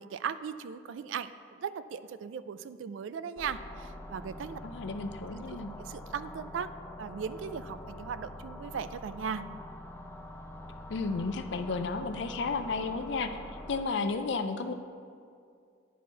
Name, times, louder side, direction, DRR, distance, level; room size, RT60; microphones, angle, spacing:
voice 1, 0.0-4.6 5.5-6.7 7.0-9.4, right 7 dB, 80° right, 13 dB, 0.3 m, -38 dB
sound 1, 3.4-13.8, left 1 dB, 10° left, 0.5 m, -45 dB
voice 2, 4.6-5.7 10.9-13.3 13.7-14.7, left 4 dB, 65° left, 8 dB, 0.4 m, -32 dB
9.2 x 4.4 x 6.0 m, 2.3 s
head